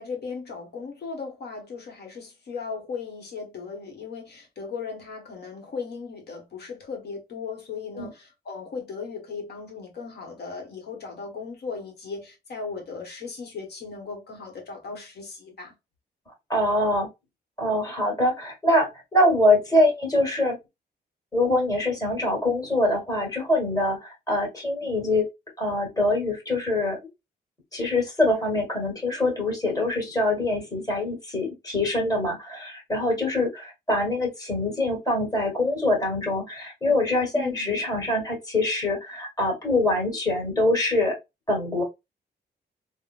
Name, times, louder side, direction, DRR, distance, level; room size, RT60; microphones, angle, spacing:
voice 1, 0.0-15.7 37.3-38.1, left 5 dB, 65° left, 1.1 m, -37 dB
voice 2, 16.5-17.1 17.6-20.6 21.3-25.3 25.6-27.0 27.7-41.1 41.5-41.8, left 1 dB, 20° left, 1.6 m, -24 dB
3.6 x 2.1 x 2.3 m
cardioid pair, 100°, 18 cm